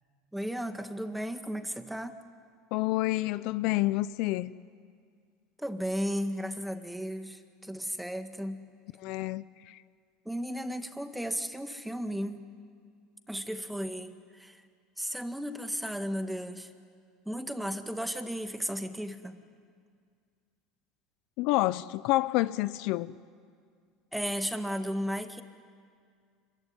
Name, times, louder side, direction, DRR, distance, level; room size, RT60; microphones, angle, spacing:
voice 1, 0.3-2.2 5.6-8.6 10.3-12.5 13.3-14.6 15.0-16.7 17.3-19.4 24.1-25.4, equal, 5° right, 1.9 m, -34 dB
voice 2, 2.7-4.5 9.0-9.8 21.4-23.1, left 18 dB, 65° left, 0.6 m, -28 dB
26.0 x 22.5 x 9.8 m
supercardioid pair, 105°, 0 cm